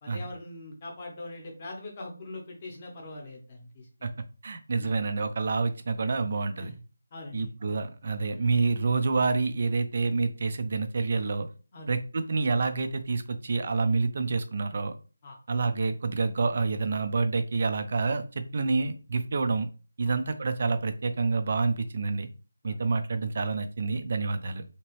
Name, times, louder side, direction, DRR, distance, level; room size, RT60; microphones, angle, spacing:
voice 1, 0.0-4.2 6.5-6.8 7.1-7.6 8.3-8.4 11.7-11.9 15.2-15.4 20.0-20.2 22.6-22.7, left 2 dB, 20° left, 0 dB, 0.8 m, -42 dB
voice 2, 4.4-6.7 7.3-11.5 11.9-14.9 15.5-18.2 18.5-19.7 20.0-22.3 22.6-24.6, right 4 dB, 35° right, 8 dB, 0.4 m, -28 dB
2.9 x 2.8 x 3.0 m, 0.35 s
figure-of-eight pair, 175°, 0 cm